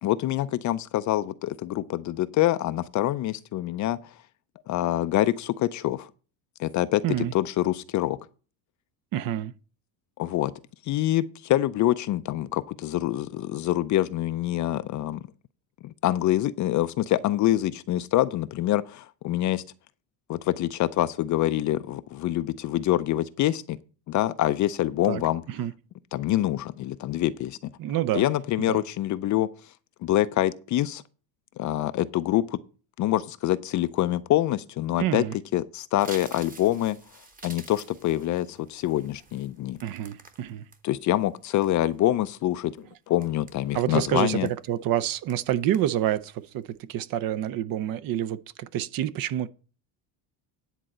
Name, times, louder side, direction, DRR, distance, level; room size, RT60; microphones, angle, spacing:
voice 1, 0.0-4.0 4.7-6.1 6.6-8.2 10.2-10.5 10.9-15.2 15.8-19.6 20.3-23.8 24.1-25.4 26.1-27.7 28.1-29.5 30.0-31.0 31.6-32.6 33.0-35.2 35.5-37.0 37.4-39.8 40.8-44.5, left 14 dB, 40° left, 0.4 m, -25 dB
voice 2, 9.1-9.5 25.0-25.2 25.5-25.7 27.8-28.2 28.7-28.8 35.0-35.3 39.8-40.7 43.7-49.5, right 12 dB, 45° right, 0.6 m, -28 dB
sound 1, 36.0-40.8 41.2-42.1 42.6-42.8 43.2-44.0 44.4-44.7 45.0-45.5 45.7-46.1 46.5-46.7, right 3 dB, 15° right, 1.0 m, -48 dB
10.0 x 4.1 x 7.6 m
cardioid pair, 135°, 48 cm